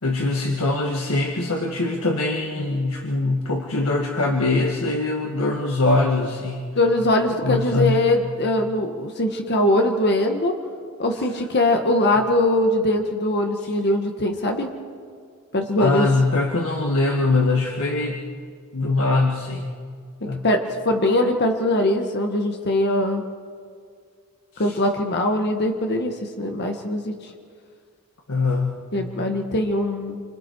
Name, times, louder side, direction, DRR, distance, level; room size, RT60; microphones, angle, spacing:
voice 1, 0.0-6.7 7.4-8.0 13.6-13.7 15.8-18.2 18.7-19.8 20.3-20.4 24.5-24.8 28.3-28.8, left 2 dB, 75° left, 0 dB, 1.7 m, -22 dB
voice 2, 6.7-10.5 11.0-14.7 15.5-16.1 20.4-23.2 24.6-27.3 28.9-30.2, left 1 dB, 50° left, 3 dB, 1.6 m, -21 dB
27.5 x 26.0 x 4.7 m, 2.2 s
head